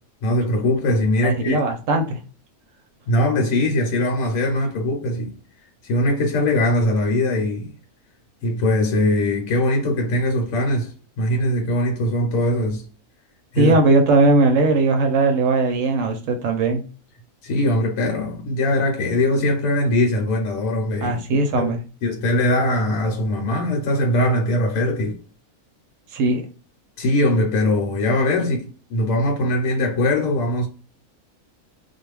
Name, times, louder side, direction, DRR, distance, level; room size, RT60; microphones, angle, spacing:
voice 1, 0.2-1.6 3.1-5.4 5.8-7.7 8.4-12.9 13.5-13.8 17.4-21.7 22.0-25.2 27.0-30.7, left 1 dB, 70° left, 1.0 m, -21 dB
voice 2, 1.2-2.2 13.6-16.8 21.0-21.8 26.1-26.5, right 3 dB, 70° right, 0.8 m, -18 dB
2.4 x 2.2 x 3.1 m
omnidirectional pair, 1.5 m